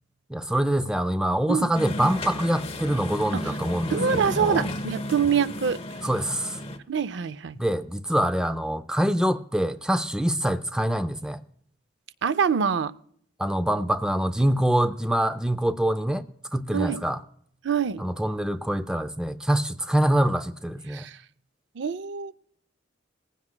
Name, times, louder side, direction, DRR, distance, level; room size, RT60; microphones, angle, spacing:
voice 1, 0.3-4.7 6.0-6.6 7.6-11.4 13.4-17.2 18.0-21.1, right 1 dB, 5° right, 0.4 m, -25 dB
sound 1, 1.7-6.8, left 1 dB, 30° left, 0.9 m, -33 dB
voice 2, 3.9-5.8 6.9-7.6 12.2-12.9 16.7-17.0 17.6-18.0 20.9-21.2 21.8-22.3, right 7 dB, 70° right, 0.5 m, -25 dB
19.0 x 15.5 x 2.2 m
head